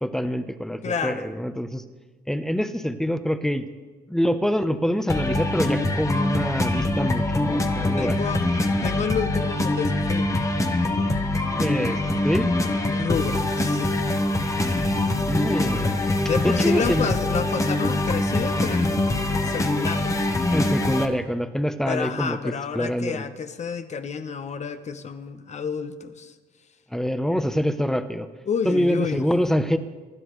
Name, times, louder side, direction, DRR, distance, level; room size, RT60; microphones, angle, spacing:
voice 1, 0.0-1.8 2.3-3.7 4.1-8.2 11.6-12.0 12.2-12.5 15.3-17.1 20.5-23.3 26.9-28.3 28.6-29.8, equal, 5° left, 10 dB, 0.8 m, -25 dB
voice 2, 0.8-1.3 8.0-8.4 8.8-10.3 12.9-13.9 16.2-20.2 21.9-26.3 28.5-29.3, left 6 dB, 40° left, 9 dB, 1.0 m, -30 dB
sound 1, 5.1-21.0, left 2 dB, 20° left, 1.2 m, -24 dB
24.0 x 11.5 x 3.2 m, 1.3 s
cardioid pair, 105°, 17 cm